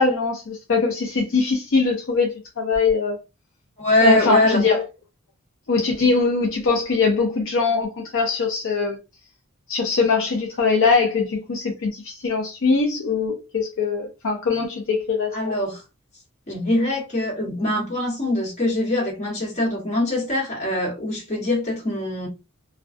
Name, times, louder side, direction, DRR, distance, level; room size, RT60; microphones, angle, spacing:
voice 1, 0.0-3.2 4.0-4.8 5.7-9.0 9.7-15.6, left 4 dB, 60° left, 0.5 m, -22 dB
voice 2, 3.8-4.6 15.3-15.8 16.5-22.3, left 1 dB, 35° left, 1.2 m, -22 dB
2.2 x 2.2 x 2.5 m
head